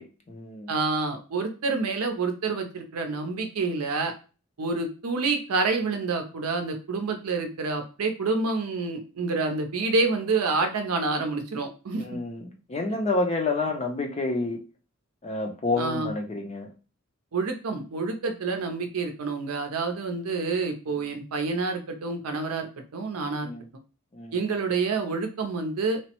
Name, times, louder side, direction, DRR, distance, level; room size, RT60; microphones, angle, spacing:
voice 1, 0.0-0.7 11.9-14.6 15.2-16.7 20.9-21.0 23.4-23.6 24.1-24.5, left 3 dB, 30° left, 3 dB, 0.4 m, -29 dB
voice 2, 0.7-4.1 4.6-12.0 15.8-16.1 17.3-23.5 24.3-26.0, right 3 dB, 85° right, 6 dB, 0.6 m, -28 dB
3.0 x 2.0 x 2.9 m, 0.34 s
head